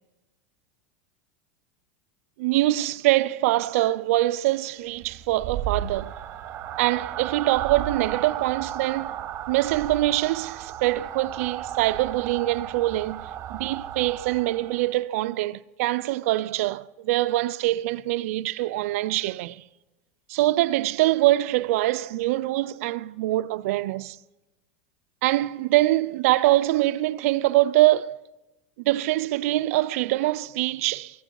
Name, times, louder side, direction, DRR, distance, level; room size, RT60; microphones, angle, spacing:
voice 1, 2.4-6.1 6.8-9.2 9.5-13.2 13.5-19.6 20.3-24.2 25.2-28.2 28.8-31.2, right 17 dB, 65° right, 0.5 m, -24 dB
sound 1, 5.0-15.0, right 10 dB, 40° right, 1.1 m, -34 dB
24.5 x 16.0 x 2.3 m
hypercardioid pair, 95°, 8 cm